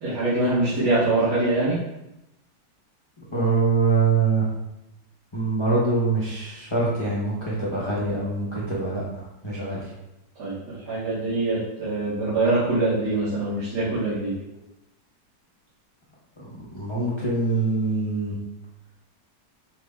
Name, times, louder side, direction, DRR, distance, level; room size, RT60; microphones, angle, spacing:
voice 1, 0.0-1.8 10.4-14.3, right 2 dB, 65° right, -13 dB, 1.9 m, -24 dB
voice 2, 3.3-4.5 5.3-9.9 16.4-18.4, right 4 dB, 45° left, -8 dB, 0.3 m, -24 dB
5.8 x 2.2 x 3.5 m, 0.90 s
omnidirectional pair, 2.0 m